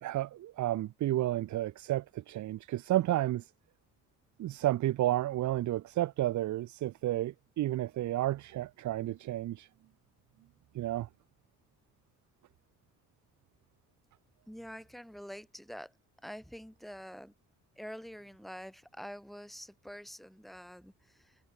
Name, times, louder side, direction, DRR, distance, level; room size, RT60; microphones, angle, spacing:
voice 1, 0.0-3.5 4.4-9.7 10.7-11.1, right 14 dB, 70° right, 0.9 m, -31 dB
voice 2, 14.5-15.9 16.2-17.3 17.8-21.4, equal, ahead, 5.3 m, -46 dB
cardioid pair, 90°, 30 cm